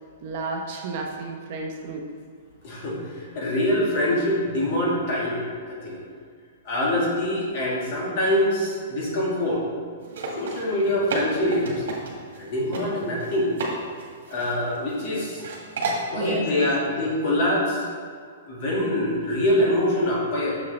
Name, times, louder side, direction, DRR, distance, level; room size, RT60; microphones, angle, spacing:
voice 1, 0.2-2.0 16.1-16.4, right 4 dB, 45° right, 1 dB, 0.8 m, -31 dB
voice 2, 2.6-6.0 6.6-9.6 10.3-11.8 12.3-13.5 14.3-15.4 16.1-17.8 18.4-20.6, left 1 dB, 45° left, -4 dB, 1.8 m, -24 dB
sound 1, 10.0-12.4 12.7-12.8 13.2-13.7 14.0-15.0 15.4-16.1, right 3 dB, 75° right, 1.7 m, -31 dB
7.0 x 6.5 x 3.3 m, 2.1 s
hypercardioid pair, 165°, 0 cm